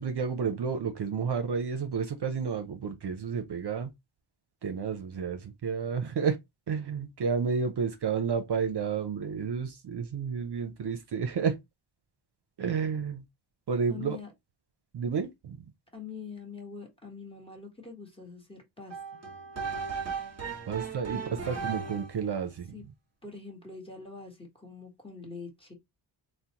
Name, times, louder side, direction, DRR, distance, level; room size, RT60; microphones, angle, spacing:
voice 1, 0.0-3.9 4.6-6.4 6.7-11.6 12.6-13.2 13.7-14.2 14.9-15.6 20.7-21.2 21.5-22.7, right 6 dB, 60° right, 0.6 m, -31 dB
voice 2, 13.9-14.3 15.9-19.2 21.1-21.7 22.7-22.8 23.2-25.7, left 5 dB, 10° left, 1.2 m, -44 dB
sound 1, 18.9-22.2, right 6 dB, 30° right, 1.0 m, -36 dB
3.8 x 2.1 x 2.8 m
wide cardioid pair, 105°, 48 cm